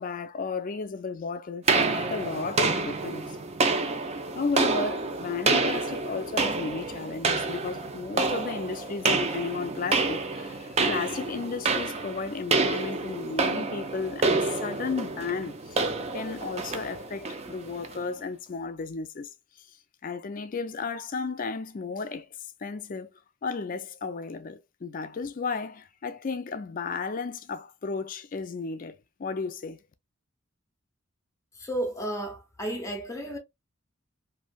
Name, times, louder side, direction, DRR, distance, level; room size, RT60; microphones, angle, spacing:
voice 1, 0.0-3.4 4.3-19.3 19.6-19.7 20.0-22.3 22.6-23.1 23.4-29.8, left 4 dB, 40° left, 0.4 m, -34 dB
sound 1, 1.7-18.0, right 3 dB, 30° right, 0.4 m, -28 dB
voice 2, 31.6-33.4, right 1 dB, 15° left, 0.8 m, -32 dB
3.1 x 2.6 x 2.3 m
head